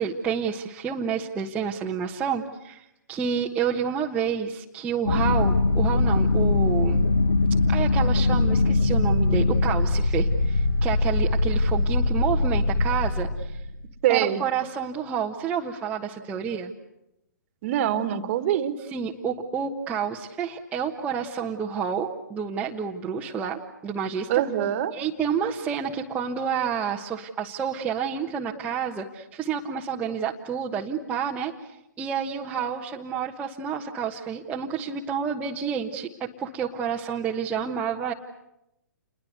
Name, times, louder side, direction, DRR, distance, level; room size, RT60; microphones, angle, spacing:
voice 1, 0.0-7.0 7.7-13.6 14.1-16.7 18.9-24.3 24.9-38.1, right 7 dB, 15° right, -3 dB, 1.4 m, -29 dB
sound 1, 5.1-13.8, left 2 dB, 85° left, 1.3 m, -22 dB
voice 2, 14.0-14.4 17.6-18.8 24.3-24.9, right 11 dB, 40° right, 12 dB, 1.9 m, -24 dB
29.0 x 22.0 x 8.1 m, 0.87 s
hypercardioid pair, 130°, 11 cm